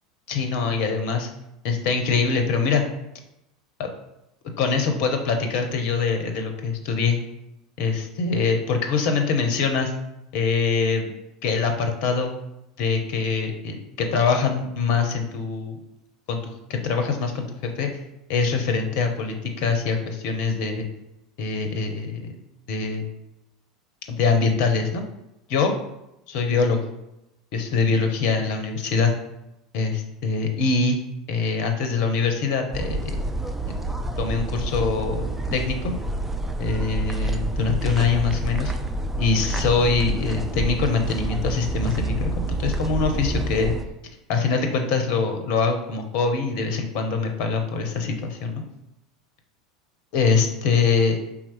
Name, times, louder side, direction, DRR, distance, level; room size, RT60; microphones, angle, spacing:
voice 1, 0.3-1.3 1.6-2.8 4.6-7.2 7.8-9.9 10.3-11.1 11.4-12.3 12.8-15.8 16.3-17.9 18.3-20.9 21.4-22.4 22.7-23.0 24.1-25.0 25.5-25.7 26.3-26.8 27.5-29.1 29.7-31.0 31.3-33.0 33.7-33.8 34.2-35.9 36.6-38.7 39.2-43.7 44.3-48.6 50.1-51.2, left 5 dB, 50° left, 5 dB, 0.7 m, -23 dB
sound 1, 32.7-43.8, right 2 dB, 10° right, 0.4 m, -28 dB
4.4 x 3.6 x 3.0 m, 0.87 s
figure-of-eight pair, 80°, 3 cm